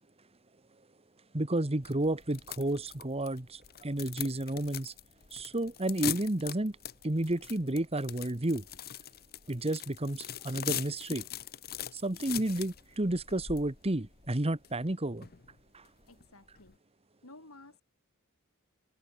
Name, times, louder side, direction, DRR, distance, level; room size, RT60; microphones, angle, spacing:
voice 1, 1.3-4.9 5.3-6.8 7.0-8.6 9.5-11.3 11.9-15.3 15.7-15.8, right 1 dB, 25° right, 1.4 m, -31 dB
congélateur craquements, 1.8-16.7, left 10 dB, 45° left, 1.0 m, -42 dB
voice 2, 16.1-16.8 17.2-17.8, left 2 dB, 70° left, 5.2 m, -53 dB
head